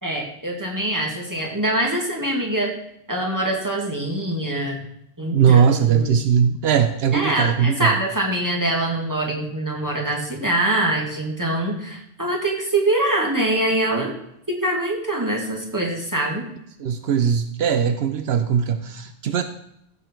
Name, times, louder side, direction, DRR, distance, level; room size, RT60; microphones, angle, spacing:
voice 1, 0.0-2.8 3.1-4.8 5.2-5.6 5.9-6.2 7.1-14.1 14.5-16.4, right 1 dB, 15° right, -1 dB, 2.3 m, -24 dB
voice 2, 5.3-8.0 16.8-19.4, right 7 dB, 80° right, 9 dB, 0.9 m, -19 dB
15.0 x 6.6 x 4.5 m, 0.76 s
omnidirectional pair, 1.1 m